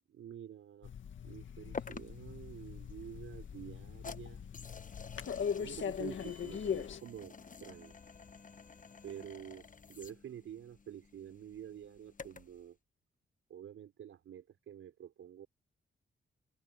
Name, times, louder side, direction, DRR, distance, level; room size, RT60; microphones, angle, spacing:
voice 1, 0.1-0.9 1.2-4.5 5.6-7.9 9.0-12.8 13.5-15.5, right 10 dB, 85° right, 4.9 m, -49 dB
sound 1, 0.8-7.0, left 7 dB, 65° left, 1.9 m, -40 dB
sound 2, 1.7-12.6, left 5 dB, 40° left, 1.2 m, -51 dB
cardioid pair, 65°, 21 cm